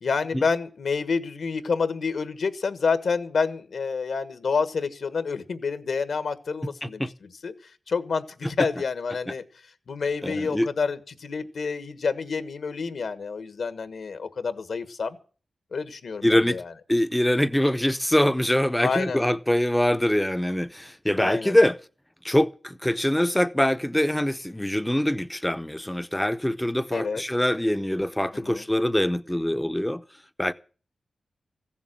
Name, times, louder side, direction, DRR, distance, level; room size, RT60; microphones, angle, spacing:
voice 1, 0.0-7.0 7.4-8.2 8.6-9.4 9.9-15.2 15.7-16.7 18.8-19.2 21.2-21.6 26.9-27.2 28.3-28.6, left 5 dB, 70° left, 1.4 m, -28 dB
voice 2, 10.2-10.7 16.2-16.6 16.9-21.8 22.2-30.0 30.4-30.5, left 1 dB, 5° left, 0.7 m, -24 dB
15.5 x 7.3 x 10.0 m
wide cardioid pair, 90°, 0 cm